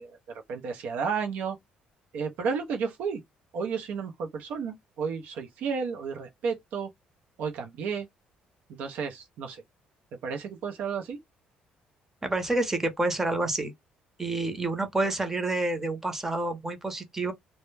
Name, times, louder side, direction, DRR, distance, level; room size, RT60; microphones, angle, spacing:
voice 1, 0.0-1.6 2.1-3.2 3.5-6.9 7.4-8.1 8.7-9.6 10.2-11.2, right 5 dB, 75° right, 0.5 m, -32 dB
voice 2, 12.2-13.7 14.2-17.3, right 2 dB, 15° right, 0.7 m, -28 dB
2.1 x 2.0 x 3.1 m
cardioid pair, 130°, 3 cm